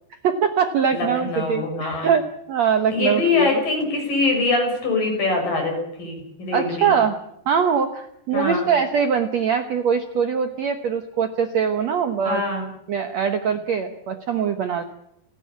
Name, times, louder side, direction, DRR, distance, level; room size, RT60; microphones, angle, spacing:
voice 1, 0.1-3.6 6.5-7.2 7.5-12.4 12.9-14.8, right 7 dB, 75° right, 8 dB, 1.6 m, -22 dB
voice 2, 0.9-2.1 2.9-6.9 8.3-8.7 12.2-12.6, left 3 dB, 55° left, 3 dB, 8.1 m, -23 dB
29.5 x 11.5 x 8.6 m, 0.76 s
omnidirectional pair, 4.8 m